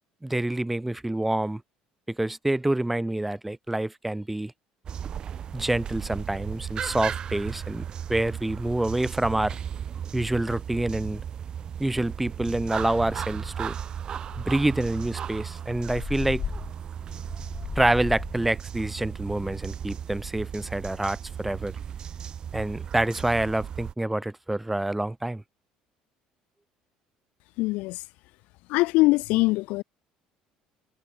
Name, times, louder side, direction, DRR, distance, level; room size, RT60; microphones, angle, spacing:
voice 1, 0.2-1.6 2.1-4.5 5.5-9.6 10.1-11.2 11.8-13.8 14.4-16.4 17.8-21.7 22.5-25.4, right 1 dB, 5° right, 0.6 m, -27 dB
sound 1, 4.9-23.9, right 8 dB, 35° right, 2.1 m, -36 dB
sound 2, 11.6-11.7 12.1-12.3 12.7-12.8 13.0-13.7 14.3-18.5, left 7 dB, 30° left, 1.6 m, -37 dB
voice 2, 27.6-28.0 28.7-29.8, left 22 dB, 75° left, 0.4 m, -22 dB
cardioid pair, 150°, 2 cm